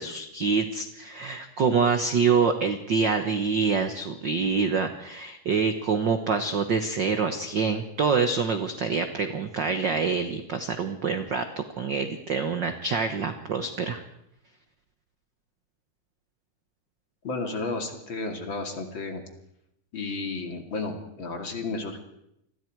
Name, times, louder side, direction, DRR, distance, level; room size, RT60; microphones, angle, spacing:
voice 1, 0.0-14.0, right 5 dB, 75° right, 8 dB, 1.0 m, -26 dB
voice 2, 17.2-19.2 19.9-22.0, left 3 dB, 40° left, 4 dB, 2.8 m, -32 dB
29.0 x 21.5 x 4.7 m, 0.79 s
omnidirectional pair, 3.8 m